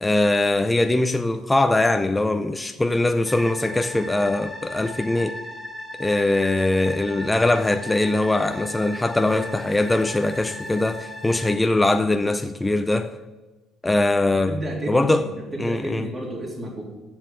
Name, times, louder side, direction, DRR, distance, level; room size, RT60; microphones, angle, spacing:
voice 1, 0.0-5.4 6.0-13.2 13.8-14.6 14.9-15.3 15.6-16.1, left 2 dB, 10° left, 0.5 m, -21 dB
sound 1, 3.2-11.5, left 1 dB, 10° right, 1.7 m, -37 dB
voice 2, 14.5-16.8, right 1 dB, 25° right, 3.3 m, -31 dB
7.4 x 7.2 x 7.9 m
cardioid pair, 110°, 0 cm